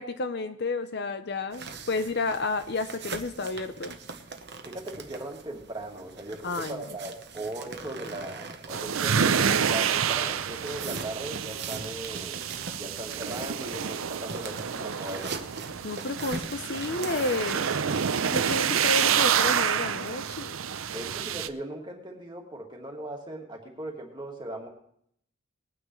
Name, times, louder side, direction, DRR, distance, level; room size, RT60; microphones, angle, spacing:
voice 1, 0.0-4.0 6.4-6.8 15.8-17.6 18.1-20.6, left 3 dB, 55° left, 10 dB, 0.7 m, -31 dB
sound 1, 1.5-9.7 10.1-17.6, right 4 dB, 55° right, 1.0 m, -41 dB
voice 2, 4.6-12.4 12.7-15.4 20.9-24.7, right 1 dB, 20° right, 0 dB, 2.1 m, -38 dB
sound 2, 8.7-21.5, right 7 dB, 80° right, 0.6 m, -28 dB
20.5 x 9.4 x 3.2 m, 0.68 s
head